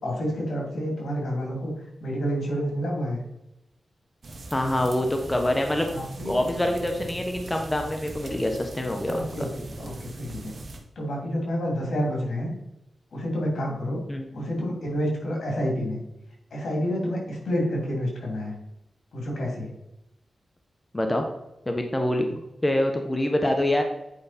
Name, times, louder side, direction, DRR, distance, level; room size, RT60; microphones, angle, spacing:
voice 1, 0.0-1.7 2.0-3.2 5.9-6.5 9.1-10.5 11.0-12.5 13.1-14.0 14.3-16.0 16.5-18.5 19.1-19.7, equal, 75° left, 0 dB, 2.8 m, -29 dB
sound 1, 4.2-10.8, right 2 dB, 60° right, 1.7 m, -40 dB
voice 2, 4.5-5.9 6.2-9.5 14.1-14.3 20.9-21.2 21.7-22.3 22.6-23.8, left 1 dB, 20° left, 4 dB, 1.1 m, -25 dB
9.5 x 5.1 x 4.3 m, 0.90 s
cardioid pair, 60°, 0 cm